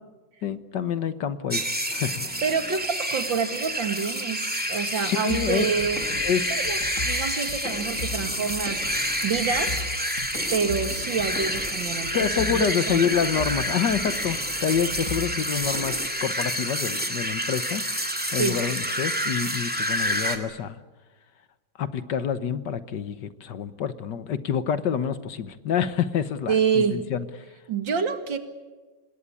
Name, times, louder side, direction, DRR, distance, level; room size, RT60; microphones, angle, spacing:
voice 1, 0.4-1.6 1.9-2.4 5.0-5.7 6.2-6.5 12.1-17.8 18.3-20.8 21.8-27.2, left 7 dB, 65° left, 13 dB, 1.7 m, -27 dB
sound 1, 1.5-20.4, equal, 5° right, 2.2 m, -28 dB
voice 2, 2.4-6.0 6.5-8.8 9.2-9.8 10.5-13.0 18.4-18.6 26.5-27.0 27.7-28.4, right 6 dB, 75° right, 8 dB, 2.7 m, -27 dB
sound 2, 5.3-16.1, left 2 dB, 40° left, 2.7 m, -37 dB
26.5 x 20.0 x 8.4 m, 1.3 s
omnidirectional pair, 2.1 m